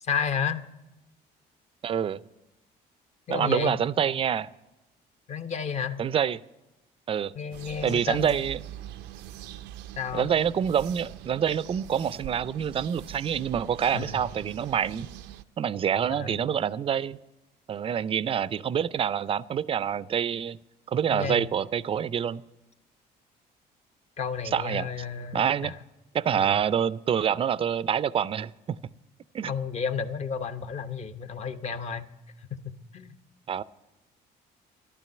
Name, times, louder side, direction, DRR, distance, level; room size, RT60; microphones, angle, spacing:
voice 1, 0.0-0.6 3.3-3.8 5.3-6.0 7.3-8.4 10.0-10.3 13.9-14.2 16.1-16.4 21.1-21.5 24.2-25.7 26.3-26.6 29.5-32.1 32.6-33.2, left 6 dB, 40° left, 0.9 m, -32 dB
voice 2, 1.8-2.2 3.3-4.5 6.0-6.4 7.1-7.3 7.8-8.6 10.1-15.1 15.6-17.2 17.7-20.6 20.9-22.4 24.4-24.9 25.3-25.7 26.1-28.8 29.3-29.5 33.5-33.6, right 8 dB, 35° right, 0.4 m, -26 dB
sound 1, 7.5-15.4, right 12 dB, 85° right, 0.5 m, -43 dB
12.5 x 11.5 x 7.7 m
cardioid pair, 110°, 17 cm